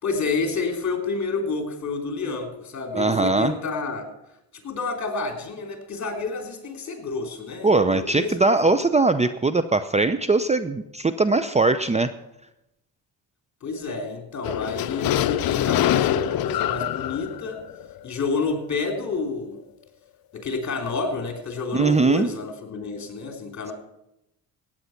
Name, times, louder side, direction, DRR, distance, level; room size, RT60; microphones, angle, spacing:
voice 1, 0.0-4.1 4.6-8.4 13.6-17.6 18.0-19.6 20.3-23.7, left 4 dB, 45° left, 4 dB, 3.3 m, -29 dB
voice 2, 2.9-3.5 7.6-12.1 21.7-22.3, right 3 dB, 15° right, 11 dB, 0.6 m, -20 dB
sound 1, 14.4-18.6, left 12 dB, 65° left, 0.7 m, -25 dB
16.0 x 9.1 x 5.8 m, 0.88 s
cardioid pair, 85°, 38 cm